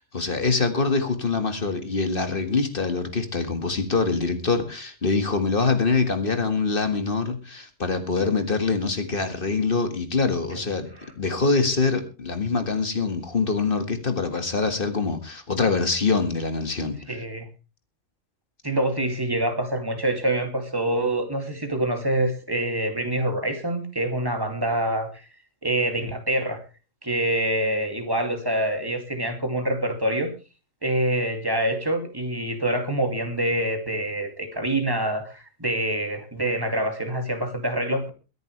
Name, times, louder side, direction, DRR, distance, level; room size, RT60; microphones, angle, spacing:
voice 1, 0.1-10.9 11.2-17.2, left 4 dB, 45° left, 8 dB, 2.0 m, -24 dB
voice 2, 17.1-17.5 18.6-25.3 25.6-26.6 27.0-30.3 30.8-38.1, right 1 dB, 15° right, 5 dB, 2.6 m, -26 dB
23.0 x 10.5 x 3.3 m, 0.31 s
omnidirectional pair, 1.3 m